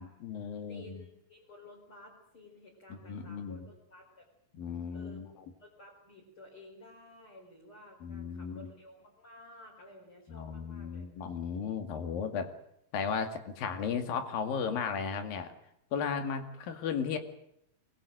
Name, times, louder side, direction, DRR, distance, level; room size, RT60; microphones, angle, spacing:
voice 1, 0.0-1.0 2.9-3.7 4.6-5.3 8.0-8.7 10.3-12.5 12.9-15.5 15.9-17.2, left 6 dB, 75° left, 7 dB, 3.9 m, -35 dB
voice 2, 0.7-4.3 4.9-5.3 5.6-11.1 16.2-16.6, left 2 dB, 35° left, -2 dB, 5.7 m, -54 dB
24.5 x 21.0 x 7.9 m, 0.77 s
omnidirectional pair, 4.1 m